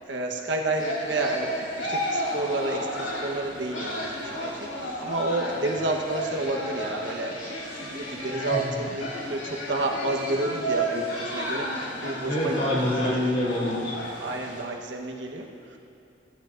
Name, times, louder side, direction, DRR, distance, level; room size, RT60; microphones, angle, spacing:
voice 1, 0.1-1.5 1.8-7.3 7.7-13.1 14.2-15.8, right 2 dB, 75° right, 1 dB, 1.2 m, -30 dB
sound 1, 0.8-14.6, equal, 80° left, 2.8 m, -32 dB
voice 2, 12.3-14.0, left 1 dB, 35° left, -5 dB, 3.3 m, -26 dB
15.5 x 15.0 x 2.6 m, 2.7 s
head